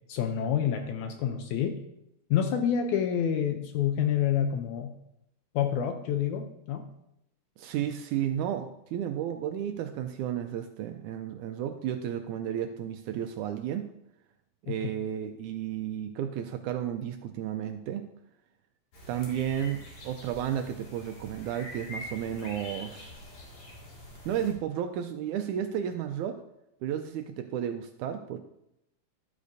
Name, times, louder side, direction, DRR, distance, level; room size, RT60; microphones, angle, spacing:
voice 1, 0.1-1.8 2.3-4.9 5.5-6.9 14.7-14.9, left 9 dB, 75° left, 6 dB, 1.9 m, -28 dB
voice 2, 7.6-13.9 14.6-18.0 19.1-23.1 24.3-26.4 26.8-28.4, right 10 dB, 80° right, 7 dB, 1.8 m, -33 dB
sound 1, 18.9-24.5, left 1 dB, 45° left, 2.9 m, -45 dB
12.5 x 8.3 x 2.7 m, 0.81 s
omnidirectional pair, 3.8 m